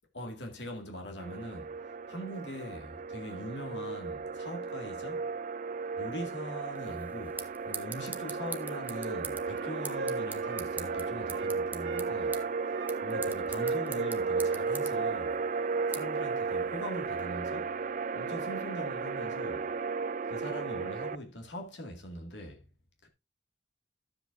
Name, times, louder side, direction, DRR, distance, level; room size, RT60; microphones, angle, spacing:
voice 1, 0.1-1.8 2.1-5.3 6.0-12.5 13.0-15.4 15.9-17.7 18.1-19.8 20.3-22.7 23.0-23.1, equal, 70° left, 2.1 m, -42 dB
sound 1, 1.2-21.2, right 4 dB, 45° right, 0.4 m, -34 dB
sound 2, 6.7-17.2, right 4 dB, 10° right, 0.7 m, -45 dB
Wind instrument woodwind instrument, 8.2-11.6 11.8-15.1, right 3 dB, 80° right, 0.7 m, -41 dB
12.5 x 7.7 x 2.6 m
head